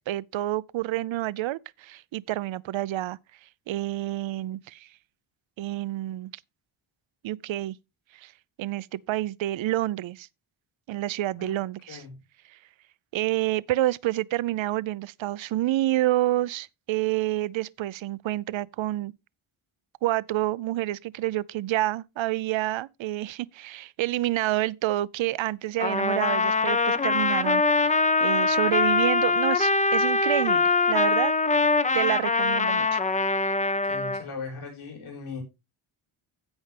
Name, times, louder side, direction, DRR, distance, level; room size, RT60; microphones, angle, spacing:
voice 1, 0.1-3.2 3.7-4.9 5.6-6.3 7.2-7.8 8.1-8.3 8.6-10.3 10.9-12.0 12.5-12.6 13.1-19.1 20.0-31.3 31.9-33.0, right 15 dB, 65° right, 0.5 m, -28 dB
Trumpet, 25.8-34.2, left 3 dB, 15° left, 0.5 m, -23 dB
voice 2, 33.6-35.4, left 4 dB, 75° left, 4.9 m, -39 dB
16.0 x 5.5 x 3.3 m
cardioid pair, 105°, 50 cm